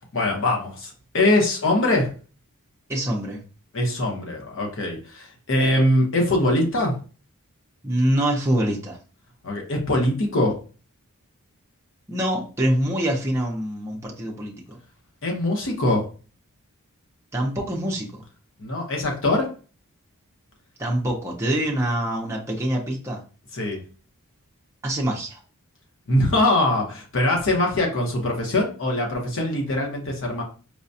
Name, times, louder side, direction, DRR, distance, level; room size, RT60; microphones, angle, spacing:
voice 1, 0.1-2.1 3.7-7.0 9.4-10.6 15.2-16.1 18.6-19.5 23.5-23.8 26.1-30.4, left 1 dB, 60° left, 1 dB, 1.0 m, -22 dB
voice 2, 2.9-3.4 7.8-9.0 12.1-14.8 17.3-18.2 20.8-23.2 24.8-25.4, right 1 dB, 10° right, -2 dB, 0.6 m, -25 dB
4.8 x 2.2 x 2.6 m, 0.37 s
head